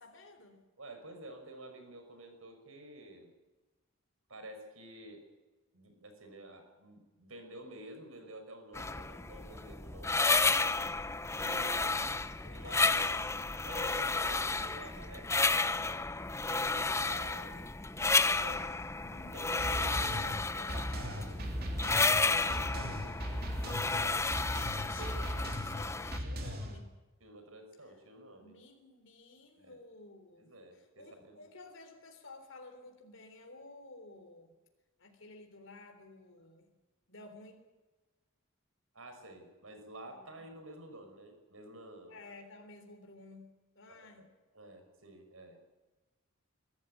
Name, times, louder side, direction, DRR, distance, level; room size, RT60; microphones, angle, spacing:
voice 1, 0.0-0.6 11.4-13.5 22.5-22.9 23.5-24.4 24.7-26.9 28.4-34.5 35.0-36.7 37.1-37.7 40.1-40.4 42.1-44.3, left 3 dB, 65° left, 5 dB, 3.6 m, -53 dB
voice 2, 0.8-3.3 4.3-5.2 5.7-10.8 11.4-11.9 12.5-13.1 13.6-15.7 16.4-18.7 19.0-23.4 23.9-24.2 25.0-25.2 26.3-26.6 27.2-28.6 29.6-29.8 30.4-31.5 38.9-42.2 44.0-44.2 44.5-45.6, right 1 dB, 85° right, 5 dB, 5.7 m, -50 dB
sound 1, 8.7-26.2, left 3 dB, 15° left, 0.7 m, -32 dB
sound 2, 19.6-26.8, equal, 50° right, 3.2 m, -38 dB
23.0 x 13.5 x 9.7 m, 1.2 s
head